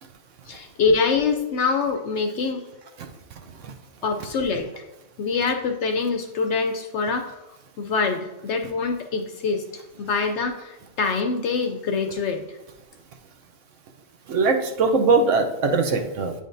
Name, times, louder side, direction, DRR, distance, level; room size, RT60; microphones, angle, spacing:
voice 1, 0.5-2.6 4.0-4.8 5.2-7.4 7.8-12.6, left 4 dB, 65° left, 5 dB, 0.7 m, -25 dB
voice 2, 14.3-16.3, right 3 dB, 65° right, 4 dB, 1.0 m, -21 dB
9.1 x 5.1 x 2.6 m, 0.99 s
omnidirectional pair, 1.5 m